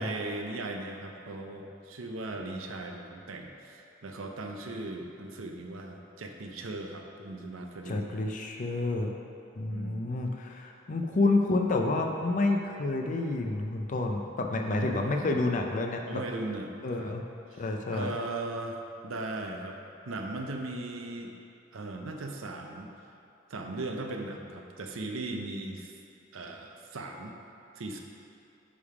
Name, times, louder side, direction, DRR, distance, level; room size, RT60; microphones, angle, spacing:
voice 1, 0.0-8.3 9.7-10.1 14.6-15.4 16.1-17.2 17.5-19.8 20.1-21.3 21.7-22.9 23.5-25.9 26.3-27.3 27.7-28.0, right 2 dB, 85° right, 3 dB, 0.7 m, -38 dB
voice 2, 7.9-9.1 9.6-16.2 16.8-17.2 17.6-18.1, left 2 dB, 40° left, 2 dB, 0.5 m, -29 dB
9.9 x 3.5 x 4.9 m, 2.8 s
head